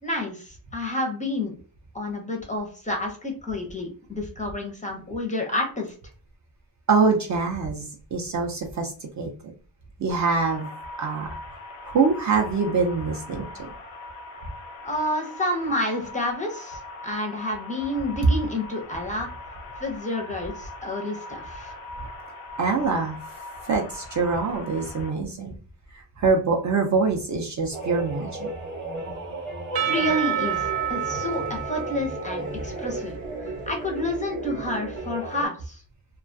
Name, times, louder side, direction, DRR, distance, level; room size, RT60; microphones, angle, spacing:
voice 1, 0.0-1.6 1.9-5.9 14.8-19.3 19.8-21.7 29.7-33.2 33.7-35.8, left 1 dB, 15° left, 1 dB, 0.5 m, -29 dB
voice 2, 6.9-9.3 10.0-10.7 11.0-11.3 11.8-13.5 22.6-23.2 23.6-25.5 25.9-28.5, right 4 dB, 40° right, 2 dB, 0.4 m, -24 dB
sound 1, 10.1-25.1, left 2 dB, 85° left, 0.7 m, -41 dB
sound 2, 27.7-35.5, right 2 dB, 25° right, 0.8 m, -34 dB
Percussion / Church bell, 29.8-33.7, right 9 dB, 80° right, 0.7 m, -30 dB
2.2 x 2.2 x 2.5 m, 0.41 s
cardioid pair, 130°, 45 cm